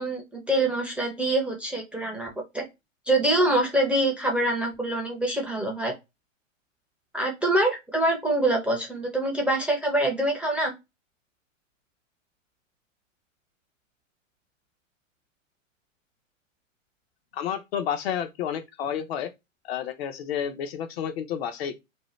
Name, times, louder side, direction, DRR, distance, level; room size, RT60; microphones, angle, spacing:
voice 1, 0.0-2.6 3.1-5.9 7.1-10.7, right 1 dB, 5° right, 0.5 m, -25 dB
voice 2, 17.3-19.3 19.6-21.8, left 9 dB, 50° left, 0.7 m, -30 dB
2.7 x 2.1 x 3.1 m
hypercardioid pair, 120°, 40 cm